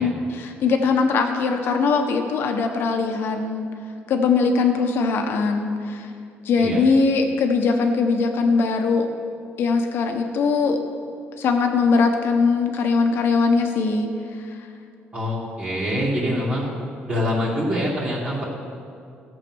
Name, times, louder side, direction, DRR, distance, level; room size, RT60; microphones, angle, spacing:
voice 1, 0.0-3.6 4.1-6.1 6.4-9.1 9.6-10.8 11.4-14.7 16.0-16.6, left 4 dB, 65° left, 4 dB, 1.4 m, -21 dB
voice 2, 15.1-16.7 17.0-18.4, equal, 30° right, -7 dB, 2.6 m, -25 dB
15.5 x 7.7 x 6.4 m, 2.4 s
cardioid pair, 135°, 4 cm